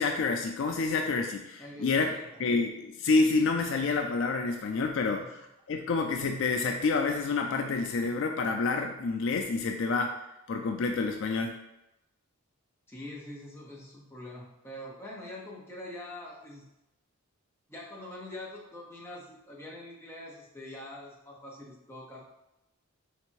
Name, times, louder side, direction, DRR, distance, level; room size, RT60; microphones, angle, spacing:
voice 1, 0.0-2.1 2.4-5.4 5.7-10.1 10.5-11.5, left 4 dB, 60° left, 4 dB, 0.3 m, -28 dB
voice 2, 1.6-2.4 5.2-5.3 12.9-16.6 17.7-22.2, left 1 dB, 10° left, -4 dB, 0.7 m, -44 dB
3.3 x 2.9 x 4.5 m, 0.91 s
head